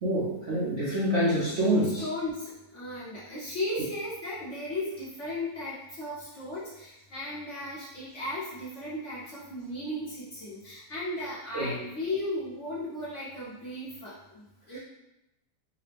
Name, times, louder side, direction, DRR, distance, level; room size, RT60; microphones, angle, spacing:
voice 1, 0.0-2.0 11.5-11.8 14.7-14.8, equal, 50° right, -7 dB, 0.9 m, -26 dB
voice 2, 1.8-14.8, left 1 dB, 50° left, -7 dB, 1.0 m, -36 dB
4.9 x 2.2 x 3.3 m, 0.91 s
omnidirectional pair, 1.9 m